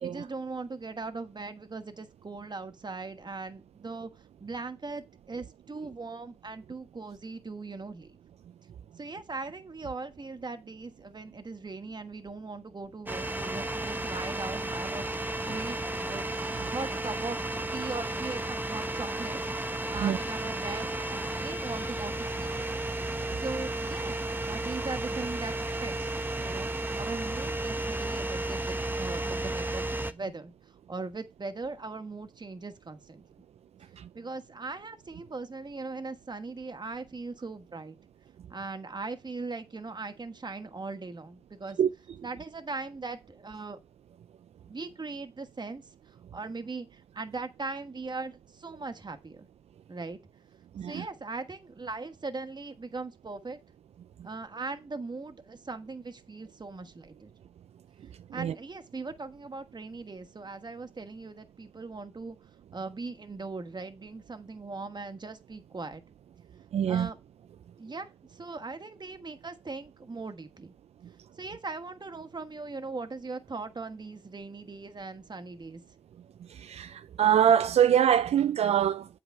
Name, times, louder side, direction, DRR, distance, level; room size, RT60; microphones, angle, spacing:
voice 1, 0.0-8.2 9.0-15.0 15.5-17.4 17.7-19.4 19.9-22.5 23.4-24.1 24.5-26.7 27.0-29.8 30.1-33.2 34.1-38.0 38.5-41.8 42.2-43.8 44.7-49.5 49.9-50.2 50.9-53.6 54.2-57.3 58.3-62.4 62.7-66.0 66.9-67.2 67.8-70.7 71.4-75.8, right 3 dB, 40° right, 1.4 m, -39 dB
sound 1, 13.1-30.1, right 2 dB, 20° right, 1.1 m, -33 dB
voice 2, 66.7-67.1 76.6-79.1, right 9 dB, 75° right, 0.4 m, -24 dB
8.2 x 4.9 x 4.7 m
cardioid pair, 45°, 11 cm